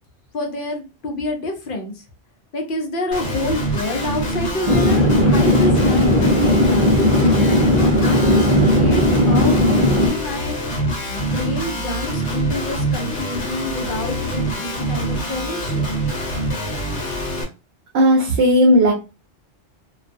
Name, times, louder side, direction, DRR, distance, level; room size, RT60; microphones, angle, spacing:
voice 1, 0.3-2.0 2.5-6.9 7.4-10.5 11.1-15.9, left 2 dB, 55° left, 2 dB, 0.7 m, -27 dB
Guitar, 3.1-17.4, right 1 dB, 85° left, 1.1 m, -25 dB
Chatter / Fixed-wing aircraft airplane, 4.7-10.1, left 1 dB, 45° right, 0.4 m, -16 dB
voice 2, 17.9-18.9, equal, 70° right, 0 dB, 0.8 m, -14 dB
2.3 x 2.3 x 2.5 m, 0.29 s
omnidirectional pair, 1.1 m